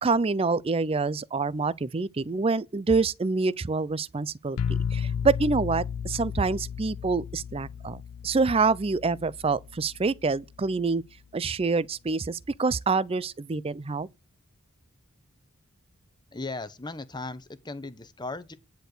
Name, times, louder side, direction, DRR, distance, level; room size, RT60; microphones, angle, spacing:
voice 1, 0.0-11.0 11.3-14.1, right 4 dB, 25° right, 0.4 m, -26 dB
sound 1, 4.6-10.3, left 7 dB, 80° left, 0.4 m, -34 dB
voice 2, 16.3-18.5, left 3 dB, 20° left, 0.9 m, -37 dB
10.5 x 4.4 x 6.6 m
head